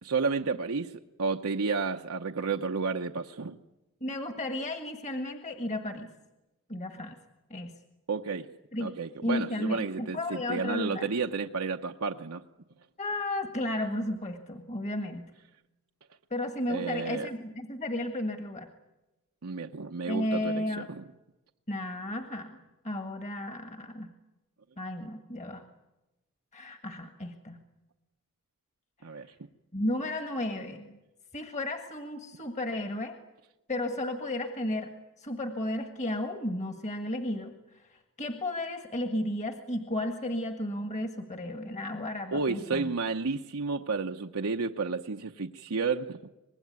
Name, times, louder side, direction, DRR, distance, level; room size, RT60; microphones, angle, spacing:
voice 1, 0.0-3.6 8.1-8.4 8.8-12.4 16.7-17.3 19.4-21.0 29.0-29.3 42.3-46.2, right 4 dB, 80° right, 3 dB, 0.9 m, -31 dB
voice 2, 4.0-6.1 6.7-7.2 7.5-7.7 8.7-8.9 9.2-11.1 13.0-15.3 16.3-18.7 20.1-20.9 21.7-22.6 22.8-24.1 24.8-25.6 26.5-27.6 29.7-31.0 31.3-33.1 33.7-34.9 35.2-37.5 38.2-42.9, left 1 dB, 30° left, 5 dB, 1.7 m, -33 dB
25.0 x 20.5 x 9.5 m, 1.0 s
head